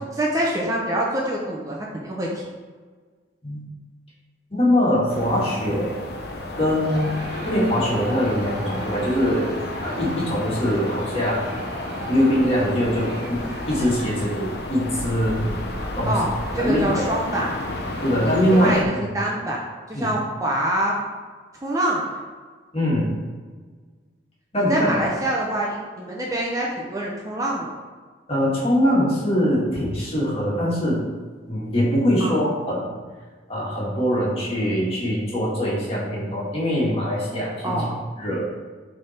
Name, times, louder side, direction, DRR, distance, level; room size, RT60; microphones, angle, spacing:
voice 1, 0.1-2.4 16.1-16.3 16.5-17.5 18.2-19.6 19.9-20.9 21.6-22.2 24.5-27.7 32.2-32.4 37.6-37.9, right 1 dB, 20° right, -3 dB, 0.7 m, -25 dB
voice 2, 4.5-5.9 6.6-9.5 9.8-11.6 12.1-13.4 13.7-15.5 16.0-16.2 16.6-17.0 18.0-19.1 19.9-20.1 22.7-23.2 24.5-24.9 28.3-31.0 31.5-33.0 33.5-37.8 38.2-38.4, equal, 35° left, -5 dB, 1.9 m, -22 dB
sound 1, 5.1-18.8, left 1 dB, 60° left, 0.8 m, -32 dB
Crowd, 6.8-14.5, right 1 dB, 60° right, 1.4 m, -39 dB
7.2 x 3.5 x 4.3 m, 1.5 s
head